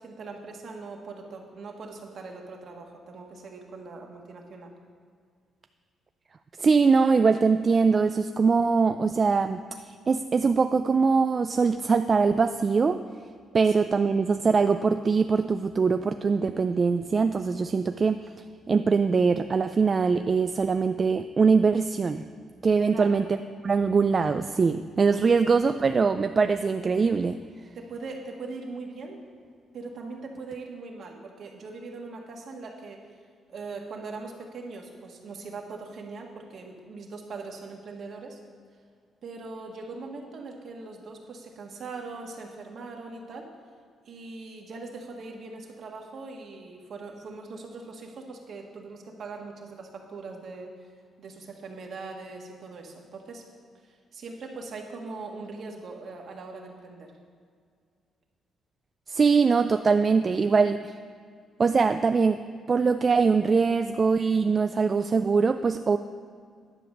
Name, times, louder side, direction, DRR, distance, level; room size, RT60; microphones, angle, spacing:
voice 1, 0.0-4.7 13.6-13.7 22.9-23.2 25.3-25.4 27.7-29.2 29.7-33.0 33.5-38.4 39.2-43.5 44.0-50.7 51.2-53.4 53.8-57.1, right 3 dB, 60° right, 1 dB, 1.6 m, -41 dB
voice 2, 6.6-13.0 13.5-18.2 18.7-22.2 22.6-23.3 23.6-27.4 59.1-60.9 61.6-62.4 62.7-66.0, right 5 dB, 35° right, 9 dB, 0.3 m, -22 dB
10.5 x 5.0 x 7.2 m, 2.1 s
cardioid pair, 90°, 0 cm